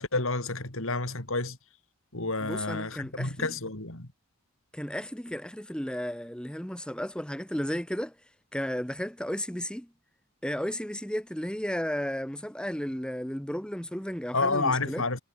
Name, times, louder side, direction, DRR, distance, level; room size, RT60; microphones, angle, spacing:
voice 1, 0.0-1.6 2.1-4.1 14.3-15.2, left 3 dB, 60° left, 3.6 m, -30 dB
voice 2, 2.4-3.5 4.7-8.1 8.5-9.9 10.4-15.0, equal, 5° left, 1.6 m, -33 dB
head